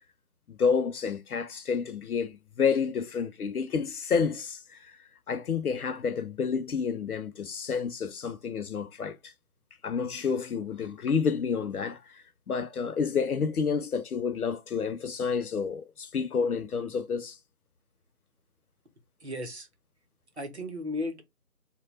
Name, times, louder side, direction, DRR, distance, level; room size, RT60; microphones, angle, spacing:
voice 1, 0.5-5.0 5.3-9.3 9.8-17.4, left 6 dB, 70° left, 0.5 m, -29 dB
voice 2, 19.2-19.7 20.4-21.2, left 1 dB, 45° right, 0.7 m, -35 dB
2.2 x 2.1 x 3.1 m
figure-of-eight pair, 165°, 47 cm